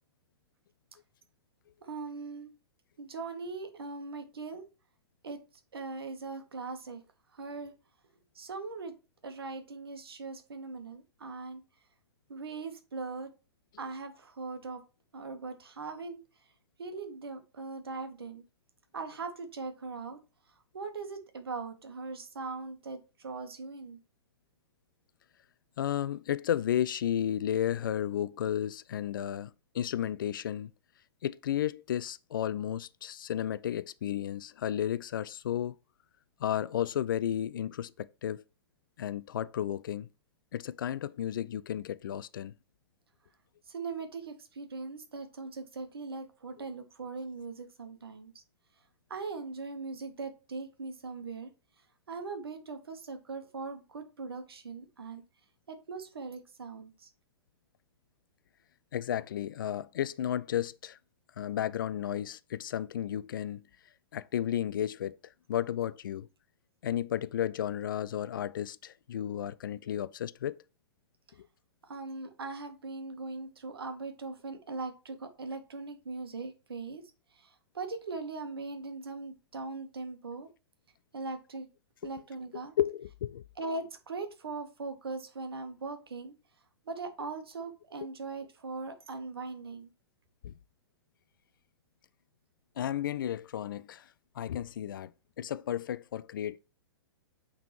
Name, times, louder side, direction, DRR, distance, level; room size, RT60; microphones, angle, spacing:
voice 1, 1.8-2.5 3.0-4.6 5.2-5.4 5.7-7.0 7.3-7.7 8.3-8.9 9.2-11.6 12.3-13.3 13.8-14.8 15.1-16.2 16.8-18.4 18.9-20.2 20.7-24.0 43.7-48.3 49.1-51.5 52.1-55.2 55.7-57.1 71.9-77.0 77.3-80.5 81.1-81.7 82.0-82.7 83.6-86.3 86.8-89.9, right 3 dB, 65° right, 1.4 m, -40 dB
voice 2, 25.8-30.7 31.2-35.7 36.4-38.4 39.0-40.1 40.5-42.5 58.9-61.0 61.4-63.6 64.1-66.3 66.8-70.6 71.4-71.5 82.0-82.1 82.8-83.4 90.4-90.6 92.8-94.1 94.3-95.1 95.4-96.6, left 10 dB, 55° left, 0.4 m, -33 dB
8.9 x 3.8 x 3.2 m
figure-of-eight pair, 110°, 13 cm